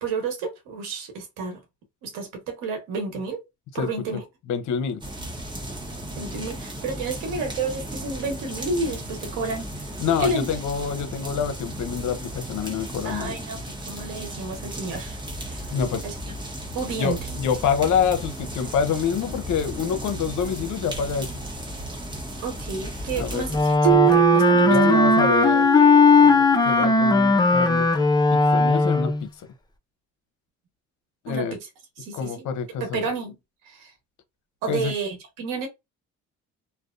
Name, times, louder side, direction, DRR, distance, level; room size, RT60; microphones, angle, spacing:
voice 1, 0.0-1.6 2.0-3.4 3.7-4.2 6.1-9.9 10.2-10.5 13.0-15.2 15.4-15.7 16.0-16.1 16.7-17.2 22.4-25.0 31.3-31.7 32.0-32.5 32.8-33.4 33.6-33.9 34.6-35.7, right 3 dB, 90° right, 1.1 m, -31 dB
voice 2, 4.5-5.0 10.0-13.4 15.7-16.1 17.0-21.3 23.2-23.5 24.7-25.7 26.1-27.9 28.3-29.3 31.2-31.6 32.1-33.1 34.7-34.9, left 7 dB, 65° left, 0.7 m, -26 dB
sound 1, 5.0-23.8, right 1 dB, 15° right, 0.9 m, -35 dB
Wind instrument woodwind instrument, 23.5-29.3, left 3 dB, 15° left, 0.4 m, -18 dB
Keyboard (musical), 23.8-26.6, right 24 dB, 60° right, 0.6 m, -22 dB
2.5 x 2.1 x 2.4 m
cardioid pair, 85°, 32 cm